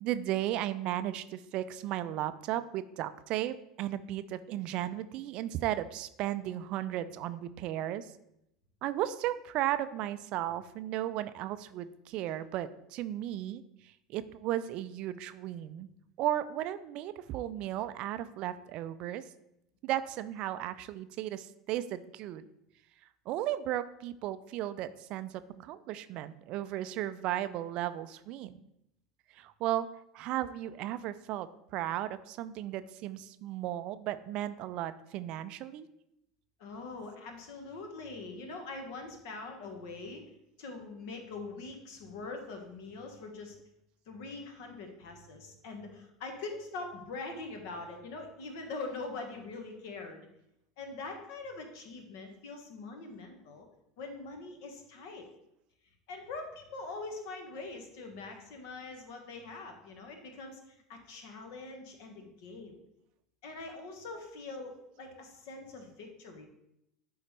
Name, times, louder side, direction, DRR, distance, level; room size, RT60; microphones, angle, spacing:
voice 1, 0.0-8.1 8.8-13.6 14.1-15.9 16.2-19.2 19.8-22.5 23.3-28.6 29.3-29.9 30.1-35.9, right 13 dB, 50° right, 13 dB, 0.4 m, -35 dB
voice 2, 36.6-40.2 40.6-43.6 44.1-50.3 50.8-53.7 54.0-55.3 56.1-62.8 63.4-66.5, left 3 dB, 60° left, 4 dB, 1.4 m, -43 dB
11.5 x 3.9 x 3.2 m, 0.81 s
figure-of-eight pair, 75°, 2 cm